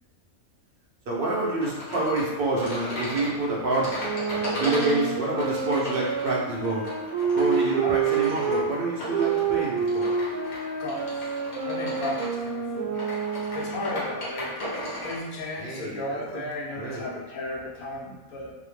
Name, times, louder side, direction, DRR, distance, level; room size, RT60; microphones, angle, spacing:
voice 1, 1.1-3.9 4.3-6.9 7.3-10.1 15.6-16.5 16.8-17.1, right 2 dB, 65° right, -3 dB, 0.5 m, -27 dB
sound 1, 1.6-15.2, equal, 55° left, 1.1 m, -36 dB
sound 2, 4.0-8.7 9.1-14.1, right 5 dB, 80° right, 1.0 m, -28 dB
voice 2, 11.6-12.9 13.5-18.6, left 2 dB, 80° left, -2 dB, 1.1 m, -34 dB
2.7 x 2.0 x 3.1 m, 1.2 s
omnidirectional pair, 1.5 m